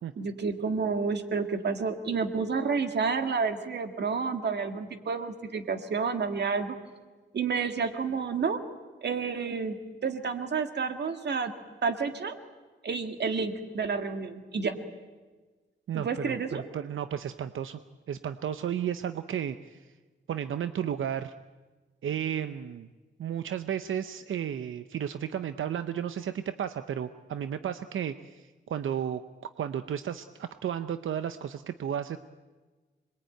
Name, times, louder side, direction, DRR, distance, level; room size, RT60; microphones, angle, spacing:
voice 1, 0.2-6.8 7.3-8.6 9.0-11.5 11.8-12.3 12.8-14.8 15.9-16.6, right 5 dB, 60° right, 7 dB, 2.0 m, -30 dB
voice 2, 15.9-17.8 18.1-19.9 20.3-21.3 22.0-22.9 23.2-29.2 29.6-32.2, right 9 dB, 90° right, 10 dB, 0.8 m, -33 dB
26.5 x 22.0 x 9.2 m, 1.3 s
wide cardioid pair, 160°, 20 cm